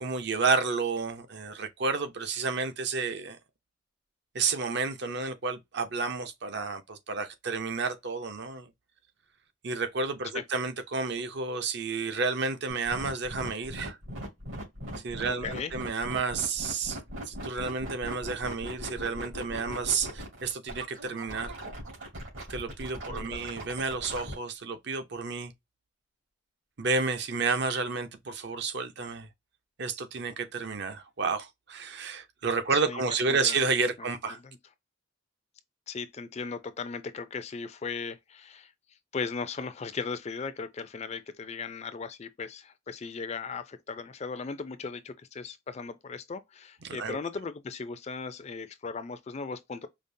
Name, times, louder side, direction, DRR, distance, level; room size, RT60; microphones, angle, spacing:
voice 1, 0.0-3.4 4.3-8.7 9.6-14.0 15.0-17.0 17.3-21.6 22.5-25.5 26.8-29.3 29.8-34.4 46.8-47.2, right 4 dB, 55° right, 0.6 m, -31 dB
sound 1, 12.7-24.3, equal, 75° right, 2.5 m, -39 dB
voice 2, 15.3-15.7 23.1-23.6 32.7-33.2 33.4-33.6 34.0-34.6 35.9-38.7 39.1-49.9, left 5 dB, 35° left, 0.4 m, -37 dB
5.1 x 2.0 x 2.6 m
head